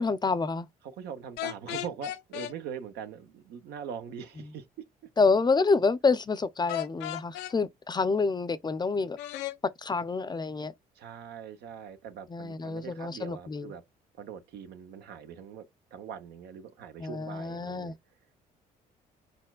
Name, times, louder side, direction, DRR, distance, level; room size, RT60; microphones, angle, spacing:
voice 1, 0.0-0.7 5.2-9.2 9.8-10.7 12.3-13.7 17.0-17.9, left 4 dB, 25° left, 0.5 m, -27 dB
voice 2, 0.8-4.8 11.0-13.8 14.1-15.6 15.9-18.0, right 7 dB, 75° right, 0.8 m, -42 dB
sound 1, 1.4-2.5 6.7-7.5 9.2-9.6, left 14 dB, 80° left, 0.5 m, -35 dB
4.7 x 4.2 x 2.3 m
supercardioid pair, 65°, 17 cm